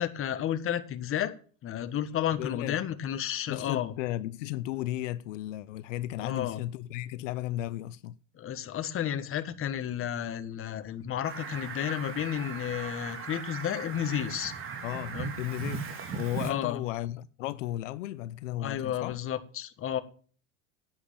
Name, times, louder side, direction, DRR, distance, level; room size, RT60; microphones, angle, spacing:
voice 1, 0.0-1.3 1.6-3.9 6.2-6.6 8.4-14.5 15.1-15.3 16.4-16.8 18.6-20.0, left 10 dB, 35° left, 1.5 m, -32 dB
voice 2, 2.4-2.8 3.5-8.2 14.8-15.8 16.1-19.2, left 14 dB, 85° left, 0.7 m, -35 dB
Fowl, 11.2-16.5, right 6 dB, 35° right, 3.1 m, -38 dB
11.0 x 9.0 x 7.2 m
supercardioid pair, 110°, 37 cm